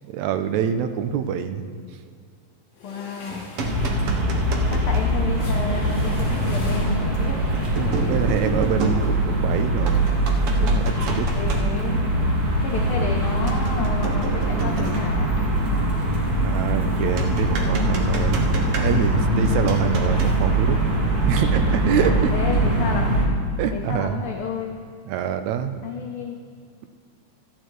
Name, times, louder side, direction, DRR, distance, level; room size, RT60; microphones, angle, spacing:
voice 1, 0.1-1.6 4.0-4.4 7.7-10.1 10.5-11.3 16.4-18.5 18.8-20.8 21.3-22.3 23.6-24.2 25.1-25.8, right 8 dB, 80° right, 9 dB, 1.9 m, -26 dB
sound 1, 2.7-7.4, left 2 dB, 60° left, 2.8 m, -42 dB
voice 2, 2.8-3.4 4.7-7.4 11.3-12.0 12.6-15.4 22.0-23.2 23.7-24.8 25.8-26.4, left 5 dB, 85° left, 1 dB, 1.2 m, -31 dB
sound 2, 3.3-5.1 6.5-6.6 7.8-9.5 9.9-11.6 13.5-15.2 17.2-19.3 19.7-20.4, right 3 dB, 65° right, 1.6 m, -31 dB
sound 3, 3.6-23.3, right 1 dB, 40° right, 1.8 m, -22 dB
14.0 x 10.5 x 3.1 m, 2.2 s
omnidirectional pair, 3.3 m